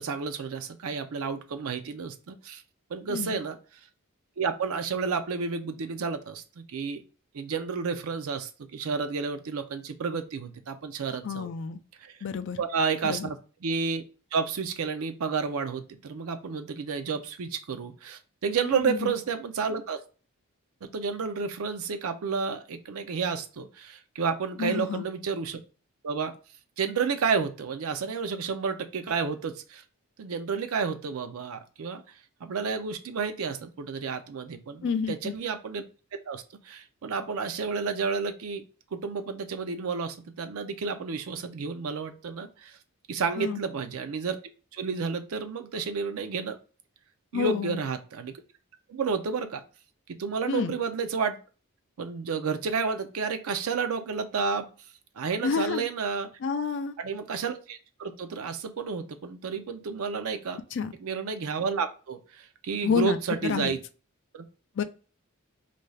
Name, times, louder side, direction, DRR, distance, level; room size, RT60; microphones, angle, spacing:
voice 1, 0.0-2.6 2.9-3.6 4.4-7.0 7.3-11.5 12.0-12.2 12.6-13.4 13.6-14.0 14.3-20.0 20.8-25.6 26.0-26.3 26.8-29.8 30.2-32.0 32.4-35.8 36.1-38.7 38.9-42.8 43.1-44.4 44.7-46.6 47.3-48.3 48.9-49.6 50.1-51.4 52.0-54.7 55.2-56.3 57.0-60.6 61.0-63.8 64.3-64.5, right 5 dB, 70° right, 8 dB, 0.4 m, -31 dB
voice 2, 3.1-3.4 11.2-11.8 12.2-12.6 13.0-13.3 18.8-19.1 24.6-25.0 34.8-35.3 43.4-43.6 47.3-47.8 50.5-50.7 55.4-55.9 56.4-56.9 60.7-60.9 62.8-63.7 64.8-64.9, left 6 dB, 55° left, 10 dB, 0.3 m, -29 dB
2.5 x 2.3 x 3.1 m, 0.36 s
head